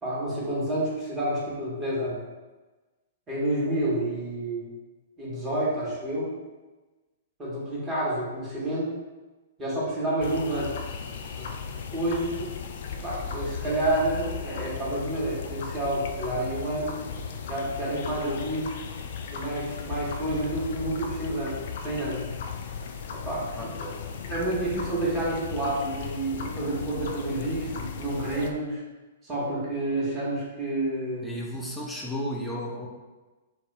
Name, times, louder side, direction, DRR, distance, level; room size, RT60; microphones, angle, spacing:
voice 1, 0.0-2.2 3.3-4.7 5.2-6.3 7.4-8.9 9.6-10.7 11.4-11.5 11.9-12.5 13.0-17.0 17.5-18.8 19.3-22.3 23.2-23.7 24.3-28.8 29.2-31.3, right 1 dB, 20° right, -7 dB, 1.2 m, -29 dB
sound 1, 10.2-28.5, left 6 dB, 50° left, 0.3 m, -36 dB
voice 2, 31.2-32.9, equal, ahead, -4 dB, 0.6 m, -33 dB
3.5 x 2.0 x 3.3 m, 1.2 s
figure-of-eight pair, 110°, 0 cm